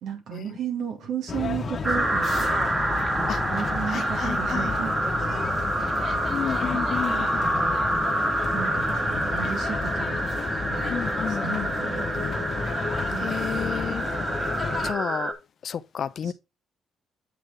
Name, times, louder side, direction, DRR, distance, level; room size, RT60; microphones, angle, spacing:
voice 1, 0.0-2.8 3.2-5.9 6.7-7.7 8.5-10.3 10.6-10.9 11.3-12.5 13.1-13.6 16.2-16.3, right 8 dB, 75° right, 2.1 m, -35 dB
sound 1, 1.3-14.9, left 5 dB, 40° left, 1.3 m, -32 dB
sound 2, 1.8-15.3, right 1 dB, 20° right, 1.7 m, -27 dB
voice 2, 3.9-4.7 6.3-7.1 10.9-11.7 13.2-14.0 14.8-15.3 15.6-16.3, left 8 dB, 55° left, 0.5 m, -31 dB
8.2 x 6.3 x 3.5 m
cardioid pair, 90°, 0 cm